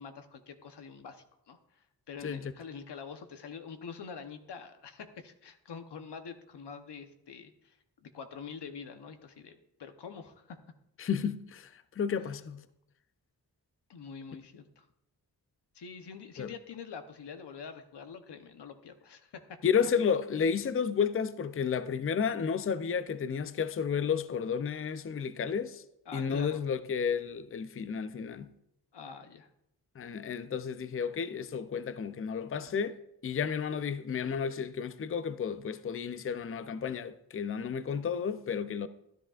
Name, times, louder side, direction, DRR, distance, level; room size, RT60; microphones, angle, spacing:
voice 1, 0.0-10.6 13.9-14.9 15.7-19.4 26.1-26.6 28.9-29.5, left 6 dB, 80° left, 0.9 m, -46 dB
voice 2, 11.0-12.6 16.4-16.5 19.6-25.8 26.1-28.5 30.0-33.0 33.2-38.9, left 6 dB, 35° left, 0.5 m, -32 dB
13.5 x 10.0 x 2.4 m
wide cardioid pair, 75°, 40 cm